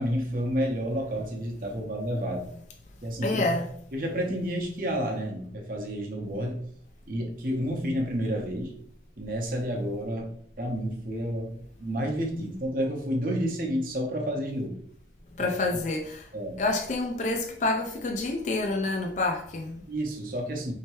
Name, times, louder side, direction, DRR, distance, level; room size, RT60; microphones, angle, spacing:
voice 1, 0.0-2.6 3.0-3.4 3.9-6.7 7.1-8.7 9.2-14.8 15.4-15.6 16.3-16.6 19.9-20.7, equal, 50° right, 0.8 m, -30 dB
voice 2, 3.2-3.7 15.4-16.3 16.6-19.8, left 2 dB, 45° left, 0.4 m, -28 dB
4.4 x 2.9 x 3.0 m
head